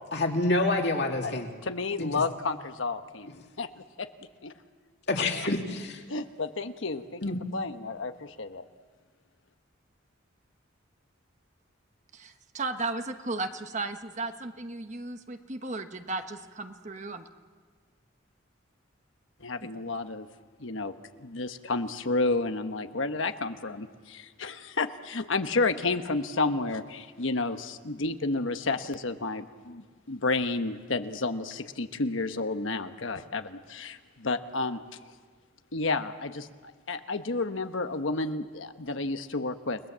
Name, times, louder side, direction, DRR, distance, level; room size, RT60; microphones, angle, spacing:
voice 1, 0.1-1.5 2.0-2.2 5.1-6.0 7.2-7.4, left 2 dB, 55° left, 2 dB, 2.7 m, -27 dB
voice 2, 1.6-3.7 4.0-4.1 4.4-4.5 6.1-7.2 7.5-8.6 19.4-20.3 20.6-20.9 21.2-34.8 35.7-36.5 36.9-39.8, left 3 dB, 75° left, 8 dB, 1.2 m, -31 dB
voice 3, 12.1-17.2, right 3 dB, 35° right, 7 dB, 1.1 m, -35 dB
30.0 x 20.0 x 7.5 m, 1.5 s
head